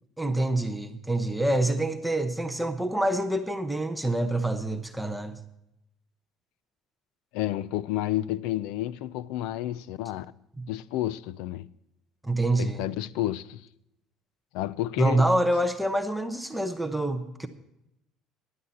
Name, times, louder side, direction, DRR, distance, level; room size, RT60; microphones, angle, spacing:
voice 1, 0.2-5.4 10.6-10.7 12.2-12.8 15.0-17.5, right 1 dB, ahead, 0.8 m, -26 dB
voice 2, 7.3-10.3 10.7-11.7 12.6-13.7 14.5-15.3, left 14 dB, 85° left, 0.5 m, -30 dB
15.0 x 11.0 x 4.1 m
cardioid pair, 160°, 0 cm